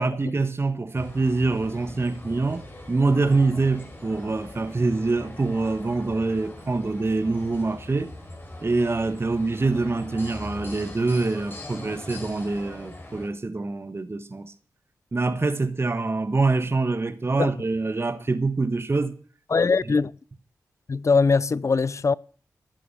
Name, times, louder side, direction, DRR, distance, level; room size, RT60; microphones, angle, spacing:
voice 1, 0.0-8.1 8.6-14.5 15.1-19.2, right 3 dB, 40° right, 1.3 m, -25 dB
sound 1, 0.9-13.3, left 1 dB, 35° left, 5.9 m, -41 dB
voice 2, 19.5-20.1 20.9-22.1, left 4 dB, 50° left, 0.5 m, -21 dB
11.5 x 9.9 x 6.6 m
cardioid pair, 40°, 6 cm